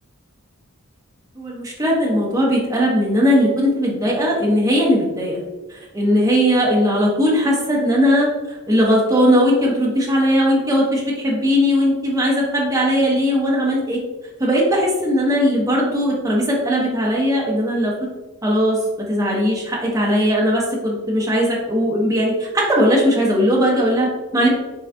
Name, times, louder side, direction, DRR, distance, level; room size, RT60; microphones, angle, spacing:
voice 1, 1.4-5.4 5.7-8.3 8.7-14.0 14.4-17.9 18.4-24.5, equal, 15° right, -4 dB, 0.7 m, -18 dB
3.7 x 3.3 x 2.6 m, 1.1 s
head